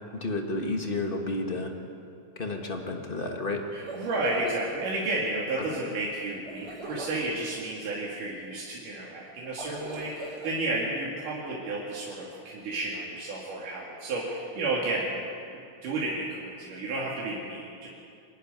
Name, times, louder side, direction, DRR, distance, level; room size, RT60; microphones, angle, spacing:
voice 1, 0.1-1.7 2.4-3.6, left 2 dB, 35° left, 3 dB, 0.9 m, -31 dB
sound 1, 3.7-4.6 6.4-7.3 9.4-10.5, right 2 dB, 45° right, 5.6 m, -41 dB
voice 2, 3.7-15.2 15.8-17.9, right 2 dB, 90° right, -5 dB, 3.9 m, -32 dB
25.5 x 11.5 x 9.5 m, 2.5 s
omnidirectional pair, 3.6 m